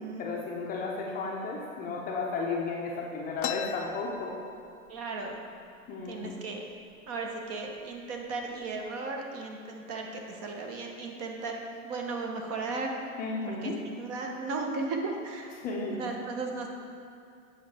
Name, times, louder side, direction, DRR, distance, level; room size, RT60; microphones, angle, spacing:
voice 1, 0.2-4.4 5.9-6.3 13.2-13.8 15.6-16.1, left 3 dB, 20° left, -2 dB, 0.7 m, -34 dB
sound 1, 3.4-5.0 5.3-5.4 5.7-6.3 6.9-7.1 7.8-8.0 8.4-8.9, left 11 dB, 90° left, 0.6 m, -38 dB
voice 2, 4.9-5.4 6.0-6.6 7.1-11.6 11.8-12.9 13.5-15.5 15.9-16.7, right 3 dB, 35° right, 2 dB, 1.0 m, -36 dB
8.4 x 5.7 x 4.3 m, 2.3 s
hypercardioid pair, 135°, 42 cm